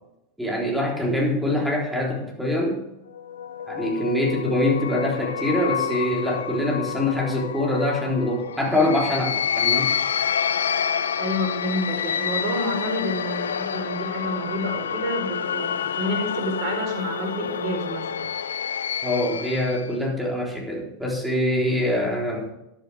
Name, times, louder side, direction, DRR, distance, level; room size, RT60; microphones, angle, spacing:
voice 1, 0.4-2.8 3.7-9.9 19.0-22.5, left 1 dB, 5° right, -2 dB, 3.8 m, -24 dB
sound 1, 3.1-19.9, left 8 dB, 65° left, 0.5 m, -28 dB
voice 2, 11.2-18.3, equal, 45° right, 3 dB, 4.2 m, -29 dB
14.0 x 10.5 x 3.5 m, 0.89 s
figure-of-eight pair, 90°, 0 cm